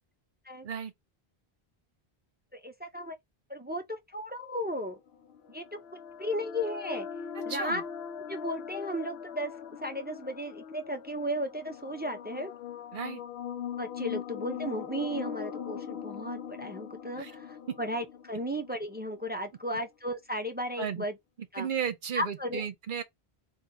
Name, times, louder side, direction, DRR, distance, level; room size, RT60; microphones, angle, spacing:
voice 1, 2.5-3.2 3.5-5.0 5.5-5.6 6.2-7.1 7.5-7.8 8.3-9.5 9.8-12.5 13.8-21.1 21.5-21.7 22.2-22.6, equal, 15° right, 0.4 m, -35 dB
sound 1, 5.1-19.2, left 8 dB, 75° left, 0.8 m, -41 dB
voice 2, 7.3-7.8 12.9-13.2 17.2-17.3 17.7-17.8 20.8-21.0 21.4-23.0, right 8 dB, 55° right, 0.9 m, -34 dB
3.7 x 2.5 x 3.8 m
omnidirectional pair, 1.0 m